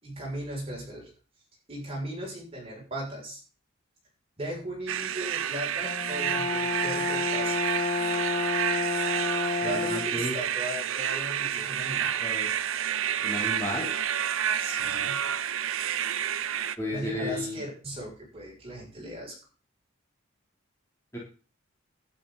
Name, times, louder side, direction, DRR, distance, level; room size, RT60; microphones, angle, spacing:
voice 1, 0.0-1.1 1.7-3.4 4.4-7.6 9.6-12.1 14.6-15.2 16.9-19.3, right 1 dB, 25° right, -3 dB, 7.1 m, -37 dB
sound 1, 4.9-16.8, right 9 dB, 75° right, 0.6 m, -30 dB
Brass instrument, 5.8-10.2, left 3 dB, 30° left, 1.1 m, -30 dB
voice 2, 9.4-10.3 12.2-12.5 13.2-13.9 16.8-17.6 21.1-21.2, left 1 dB, 15° left, -4 dB, 3.6 m, -33 dB
11.5 x 10.5 x 4.3 m, 0.36 s
head